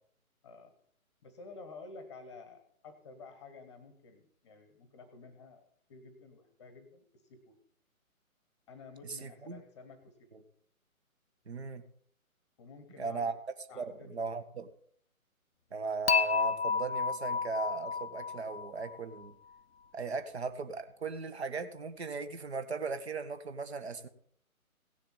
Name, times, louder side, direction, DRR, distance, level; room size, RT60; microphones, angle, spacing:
voice 1, 0.4-0.8 1.2-7.6 8.7-10.4 12.6-13.4 13.7-14.3, left 4 dB, 20° left, 9 dB, 1.1 m, -52 dB
voice 2, 9.1-9.6 10.3-10.4 11.5-11.8 13.0-13.3 13.7-14.7 15.7-19.3 19.9-24.1, right 4 dB, 45° right, 10 dB, 1.5 m, -37 dB
Dishes pots and pans / Chink clink, 16.1-19.2, left 5 dB, 45° left, 0.6 m, -31 dB
17.0 x 7.1 x 5.7 m, 0.62 s
figure-of-eight pair, 140°, 43 cm